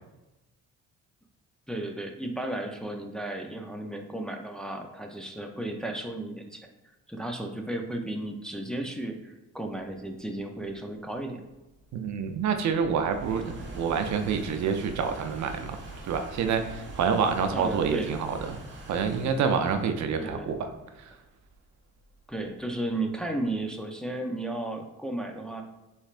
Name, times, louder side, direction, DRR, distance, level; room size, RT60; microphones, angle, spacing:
voice 1, 1.7-6.6 7.1-11.4 17.5-18.2 20.2-20.5 22.3-25.6, right 1 dB, ahead, 2 dB, 0.5 m, -34 dB
sound 1, 10.1-23.4, right 2 dB, 40° right, 1.1 m, -45 dB
voice 2, 11.9-15.8 16.0-18.6 18.9-20.7 21.0-21.1, right 6 dB, 65° right, 6 dB, 0.6 m, -27 dB
6.1 x 3.2 x 2.5 m, 0.99 s
cardioid pair, 90°, 30 cm